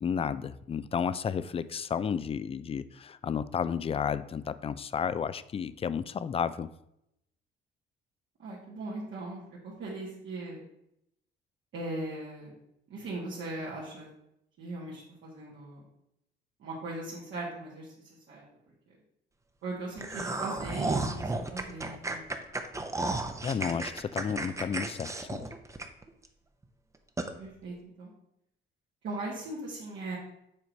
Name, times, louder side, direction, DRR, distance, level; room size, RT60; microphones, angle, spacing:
voice 1, 0.0-6.7 23.4-25.4, left 7 dB, 30° left, 15 dB, 0.3 m, -32 dB
voice 2, 8.4-10.6 11.7-12.5 12.9-14.1 14.6-15.8 16.6-17.9 18.3-18.4 18.9-19.0 19.6-22.3 27.4-28.1 29.0-30.2, right 2 dB, 70° right, -7 dB, 1.7 m, -39 dB
sound 1, 20.0-26.3 26.6-26.7 27.2-27.3, right 2 dB, 15° right, 0.7 m, -33 dB
7.2 x 3.1 x 5.2 m, 0.80 s
cardioid pair, 90°, 20 cm